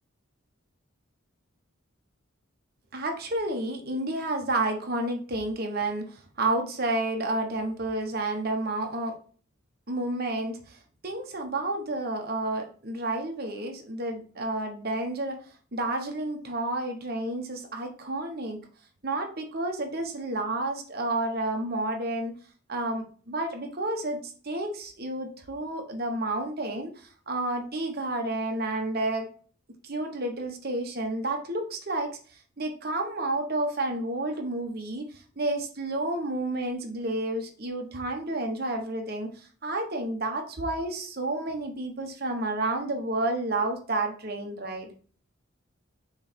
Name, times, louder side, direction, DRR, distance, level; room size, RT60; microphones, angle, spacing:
voice 1, 2.9-9.2 9.9-15.4 15.7-18.6 19.0-22.3 22.7-29.3 29.8-35.1 35.4-44.9, right 2 dB, 45° right, 4 dB, 1.2 m, -30 dB
6.5 x 3.2 x 4.5 m, 0.41 s
head